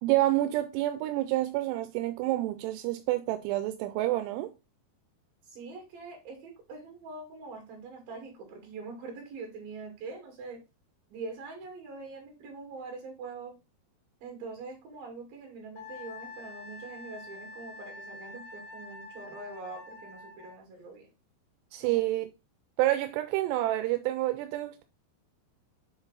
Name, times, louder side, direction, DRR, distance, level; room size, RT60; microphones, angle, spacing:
voice 1, 0.0-4.5 21.7-22.3 22.8-24.8, right 16 dB, 90° right, 2.7 m, -28 dB
voice 2, 5.4-10.6 11.1-13.5 14.2-21.1 21.8-22.0, right 3 dB, 65° right, 3.9 m, -43 dB
Wind instrument woodwind instrument, 15.8-20.6, left 3 dB, 70° left, 2.7 m, -46 dB
7.9 x 4.0 x 4.0 m
omnidirectional pair, 4.7 m